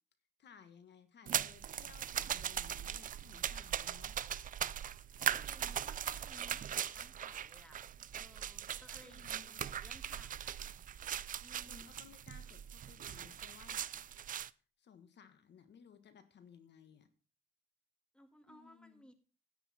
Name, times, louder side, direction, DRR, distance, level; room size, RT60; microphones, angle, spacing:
voice 1, 0.4-4.1 9.0-9.6 11.6-13.8 14.8-17.1 18.5-19.1, left 7 dB, 60° left, 10 dB, 1.4 m, -59 dB
sound 1, 1.3-14.5, right 9 dB, 45° right, 0.4 m, -40 dB
voice 2, 5.3-7.9 8.1-10.7 11.4-12.1 18.1-19.1, equal, 5° left, 8 dB, 1.8 m, -60 dB
10.5 x 9.8 x 4.2 m, 0.36 s
cardioid pair, 90°, 20 cm